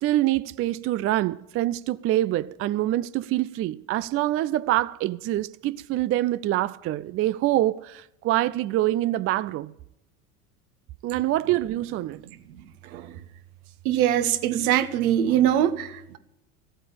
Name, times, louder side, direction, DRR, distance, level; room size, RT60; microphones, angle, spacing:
voice 1, 0.0-9.7 11.0-12.2, right 15 dB, 30° right, 0.4 m, -25 dB
voice 2, 12.5-13.2 13.8-16.2, right 11 dB, 70° right, 1.3 m, -23 dB
14.5 x 8.9 x 8.4 m
hypercardioid pair, 80°, 45 cm